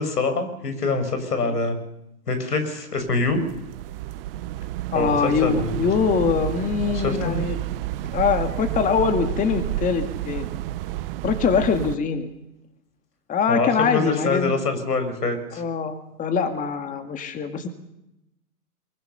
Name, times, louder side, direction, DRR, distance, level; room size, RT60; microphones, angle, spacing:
voice 1, 0.0-1.8 2.3-3.4 4.9-5.8 6.9-7.4 13.5-15.6, left 3 dB, 90° left, 8 dB, 6.4 m, -25 dB
sound 1, 3.0-12.0, right 14 dB, 40° right, 1.0 m, -30 dB
voice 2, 4.9-7.6 8.1-10.5 11.2-12.3 13.3-14.5 15.6-17.7, left 6 dB, 15° left, 8 dB, 1.9 m, -23 dB
24.0 x 21.5 x 7.0 m, 0.86 s
hypercardioid pair, 135°, 46 cm